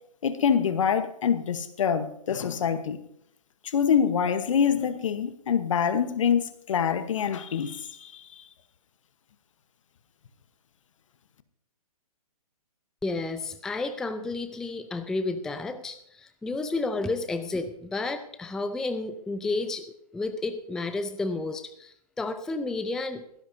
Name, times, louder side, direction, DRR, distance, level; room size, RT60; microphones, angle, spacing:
voice 1, 0.2-3.0 3.6-8.5, left 7 dB, 55° left, 11 dB, 1.1 m, -25 dB
voice 2, 13.0-19.8 20.1-23.4, left 3 dB, 5° left, 11 dB, 0.4 m, -31 dB
18.0 x 15.5 x 2.7 m, 0.72 s
figure-of-eight pair, 130°, 20 cm